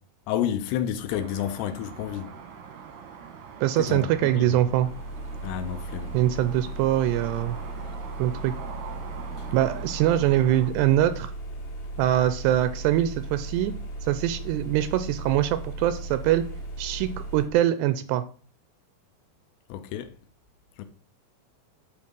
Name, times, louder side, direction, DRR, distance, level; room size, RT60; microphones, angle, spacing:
voice 1, 0.3-2.3 3.8-4.1 4.4-4.5 5.4-6.1 19.7-20.1 20.8-20.9, left 10 dB, 80° left, 2.8 m, -30 dB
sound 1, 1.1-10.7, right 7 dB, 65° right, 2.1 m, -43 dB
voice 2, 3.6-4.9 6.1-7.6 8.2-8.5 9.5-11.3 12.0-13.8 14.0-16.5 16.8-18.2, right 12 dB, 85° right, 2.6 m, -23 dB
sound 2, 4.4-17.5, right 2 dB, 45° left, 2.8 m, -37 dB
8.4 x 4.6 x 5.2 m
omnidirectional pair, 5.0 m